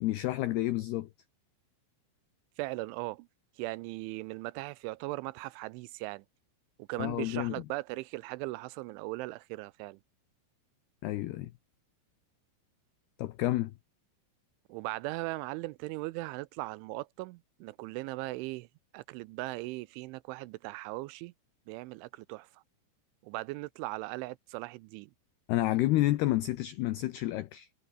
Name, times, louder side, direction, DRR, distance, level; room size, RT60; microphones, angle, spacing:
voice 1, 0.0-1.1 7.0-7.6 11.0-11.5 13.2-13.7 25.5-27.7, left 16 dB, 90° left, 2.2 m, -29 dB
voice 2, 2.6-3.3 3.6-6.2 6.9-10.0 14.7-18.7 18.9-21.3 21.7-22.6 23.2-25.1, right 21 dB, 85° right, 2.7 m, -38 dB
omnidirectional pair, 5.9 m